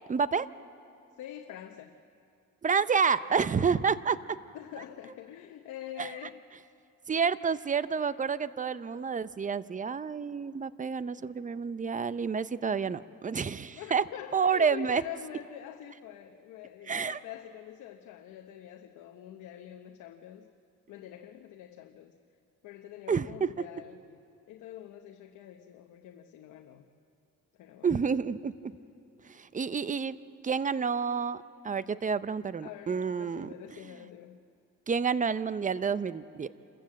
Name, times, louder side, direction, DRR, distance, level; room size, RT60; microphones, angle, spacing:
voice 1, 0.1-0.5 2.6-4.2 6.0-6.1 7.1-14.0 14.3-15.0 16.9-17.2 23.1-23.5 27.8-28.5 29.3-30.2 30.4-33.5 34.9-36.5, right 6 dB, 25° right, 15 dB, 0.6 m, -29 dB
voice 2, 1.2-2.0 4.5-6.5 11.2-11.3 13.7-20.5 20.9-22.2 22.6-24.2 24.5-26.9 27.6-28.0 32.6-34.5, left 11 dB, 85° left, 5 dB, 0.9 m, -45 dB
27.5 x 14.5 x 7.6 m, 2.5 s
cardioid pair, 90°, 30 cm